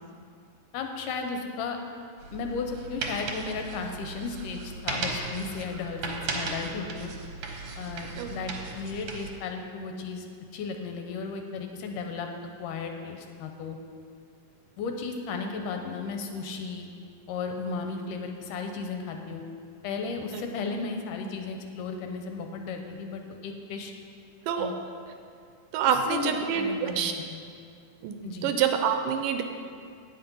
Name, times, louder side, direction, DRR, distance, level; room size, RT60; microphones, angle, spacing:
voice 1, 0.7-1.8 2.3-7.1 7.8-10.3 10.5-12.3 12.6-13.8 14.8-16.9 17.3-19.4 19.8-23.9 24.6-24.8 25.9-27.4 28.2-28.5, left 4 dB, 80° left, 4 dB, 2.2 m, -35 dB
sound 1, 2.2-9.3, right 3 dB, 65° right, 1.8 m, -36 dB
voice 2, 25.7-27.1 28.0-29.4, right 7 dB, 80° right, 6 dB, 2.2 m, -27 dB
9.3 x 8.6 x 5.3 m, 2.3 s
omnidirectional pair, 4.0 m